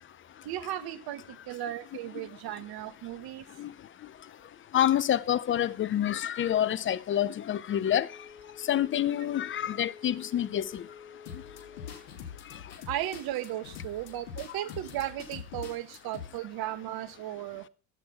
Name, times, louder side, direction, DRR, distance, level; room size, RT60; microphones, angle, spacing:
voice 1, 0.4-3.5 12.9-17.6, right 13 dB, 45° right, 1.9 m, -36 dB
voice 2, 4.7-8.1 8.7-10.8, left 11 dB, 25° left, 0.6 m, -27 dB
Wind instrument woodwind instrument, 8.0-12.2, left 7 dB, 5° left, 2.3 m, -50 dB
sound 1, 11.3-16.3, left 7 dB, 75° left, 2.8 m, -44 dB
15.5 x 7.9 x 5.9 m
hypercardioid pair, 85°, 50 cm